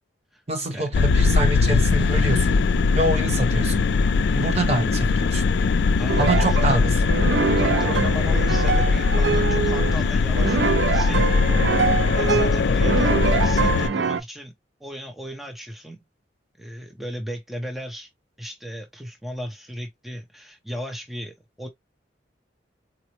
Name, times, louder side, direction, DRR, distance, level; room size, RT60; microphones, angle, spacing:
voice 1, 0.5-2.6 2.9-3.8 4.3-5.4 6.2-7.2, right 2 dB, 35° right, 1.0 m, -25 dB
sound 1, 0.9-13.9, left 4 dB, 65° left, 0.4 m, -20 dB
voice 2, 6.0-6.9 7.6-11.3 12.1-14.5 14.8-16.0 16.6-18.1 18.4-21.7, equal, ahead, 0.6 m, -36 dB
sound 2, 6.1-6.7 7.1-14.2, right 5 dB, 70° right, 0.4 m, -24 dB
4.1 x 2.0 x 3.0 m
head